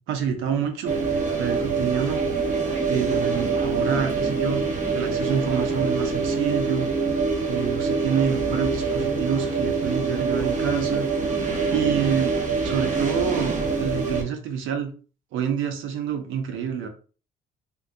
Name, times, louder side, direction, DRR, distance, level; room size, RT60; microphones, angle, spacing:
voice 1, 0.1-2.2 2.9-6.9 7.5-11.1 11.7-14.9 15.3-16.9, right 8 dB, 90° right, 6 dB, 0.7 m, -27 dB
sound 1, 0.8-14.2, right 4 dB, 40° right, 0.9 m, -25 dB
3.6 x 2.3 x 2.6 m, 0.39 s
cardioid pair, 90°, 20 cm